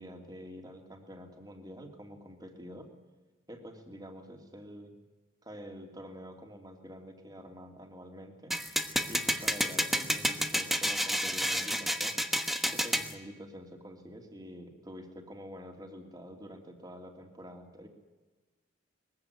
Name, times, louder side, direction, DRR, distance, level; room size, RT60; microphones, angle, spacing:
voice 1, 0.0-2.9 3.5-4.9 5.4-8.5 9.1-12.1 12.7-17.9, equal, 20° right, 4 dB, 2.9 m, -47 dB
sound 1, 8.5-13.1, equal, ahead, 1.2 m, -30 dB
22.0 x 15.5 x 9.6 m, 1.2 s
head